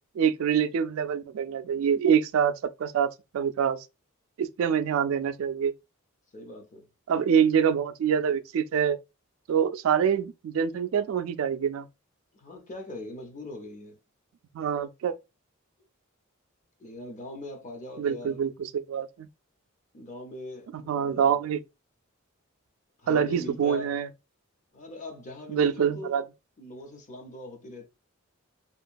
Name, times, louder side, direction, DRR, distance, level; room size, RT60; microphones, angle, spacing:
voice 1, 0.2-2.5 2.8-3.8 4.4-5.7 7.1-9.0 9.5-11.9 14.5-15.2 18.0-19.3 20.9-21.6 23.1-24.1 25.5-26.2, right 7 dB, 75° right, 0.3 m, -25 dB
voice 2, 6.3-6.9 12.3-14.0 16.8-18.4 19.9-21.4 23.0-24.0 24.7-26.2 26.6-27.9, left 1 dB, 35° left, 0.6 m, -41 dB
2.9 x 2.2 x 2.5 m
head